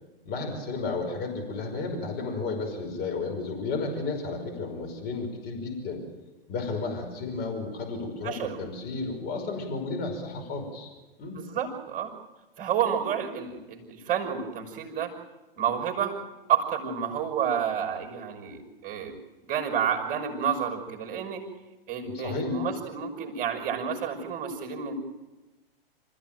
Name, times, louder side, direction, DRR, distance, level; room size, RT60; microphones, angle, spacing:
voice 1, 0.3-6.0 6.5-10.9 11.2-11.5 22.0-22.5, left 3 dB, 30° left, 2 dB, 5.6 m, -33 dB
voice 2, 8.2-8.6 11.4-12.1 12.6-15.1 15.6-16.2 16.5-19.1 19.5-21.4 21.9-24.9, right 7 dB, 25° right, 4 dB, 5.6 m, -30 dB
27.0 x 15.0 x 9.2 m, 1.1 s
figure-of-eight pair, 115°, 31 cm